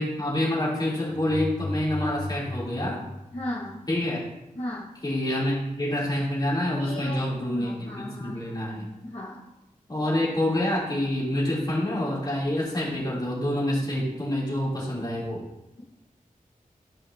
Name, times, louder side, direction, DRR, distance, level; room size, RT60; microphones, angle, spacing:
voice 1, 0.0-3.0 3.9-4.2 5.0-8.9 9.9-15.4, left 1 dB, 30° left, -6 dB, 3.1 m, -27 dB
sound 1, 1.1-4.0, left 1 dB, 80° right, 2.2 m, -36 dB
voice 2, 3.3-3.8 4.6-4.9 6.8-8.5 9.0-9.5, left 1 dB, 45° left, -7 dB, 1.4 m, -36 dB
13.0 x 5.2 x 2.8 m, 0.95 s
wide cardioid pair, 80°, 15 cm